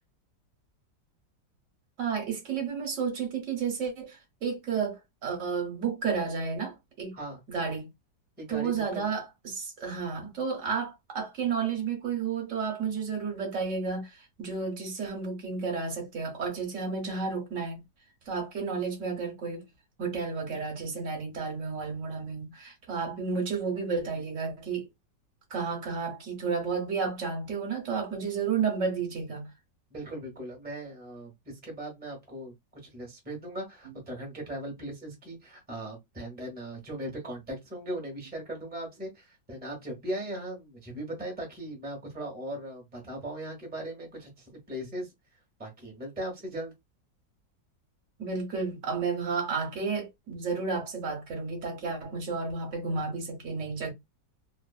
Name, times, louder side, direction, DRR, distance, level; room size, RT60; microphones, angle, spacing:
voice 1, 2.0-7.1 7.5-7.9 8.5-17.8 18.3-19.6 20.0-24.9 25.5-29.4 48.2-53.9, right 5 dB, 50° right, 1.1 m, -32 dB
voice 2, 8.4-9.1 29.9-32.5 32.8-45.1 45.6-46.7, right 1 dB, 5° right, 0.8 m, -38 dB
2.7 x 2.5 x 2.4 m
omnidirectional pair, 1.9 m